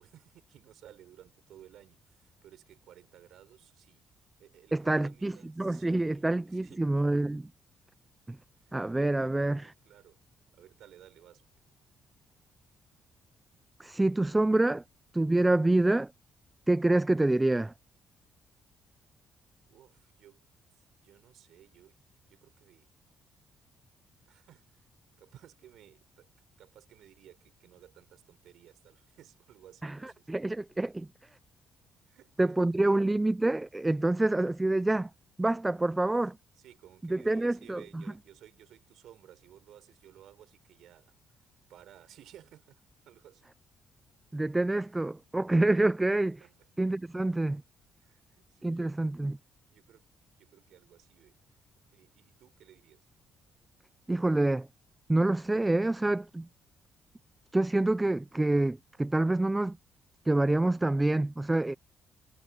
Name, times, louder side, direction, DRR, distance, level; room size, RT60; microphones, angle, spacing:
voice 1, 0.0-7.2 8.6-8.8 9.2-10.2 10.5-11.4 19.7-20.5 20.7-22.9 24.2-24.8 25.2-26.3 26.6-30.5 32.1-32.6 32.8-33.0 35.7-35.8 36.5-43.5 46.4-46.7 48.0-49.2 49.7-51.4 51.9-53.1, right 11 dB, 80° right, 5.0 m, -57 dB
voice 2, 4.7-7.4 8.3-8.4 8.7-9.7 13.8-14.8 15.1-16.1 16.7-17.7 29.8-31.1 32.4-35.1 35.4-36.4 37.1-38.0 44.3-46.4 46.8-47.6 48.6-49.4 54.1-54.7 55.1-56.5 57.5-59.8 60.3-61.7, right 2 dB, 15° right, 0.5 m, -27 dB
cardioid pair, 90°, 0 cm